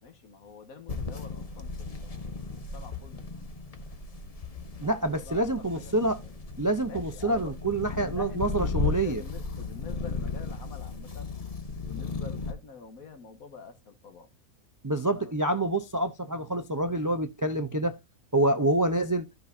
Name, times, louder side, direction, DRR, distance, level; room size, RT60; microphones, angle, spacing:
voice 1, 0.0-3.3 4.8-6.3 6.9-7.5 7.9-11.3 11.8-14.3 15.1-15.3, left 5 dB, 70° left, 1.8 m, -47 dB
sound 1, 0.9-12.5, left 4 dB, 30° left, 0.8 m, -35 dB
voice 2, 4.8-6.2 6.6-9.2 14.8-18.0 18.3-19.3, right 1 dB, 25° right, 0.4 m, -27 dB
14.0 x 5.4 x 2.6 m
omnidirectional pair, 1.6 m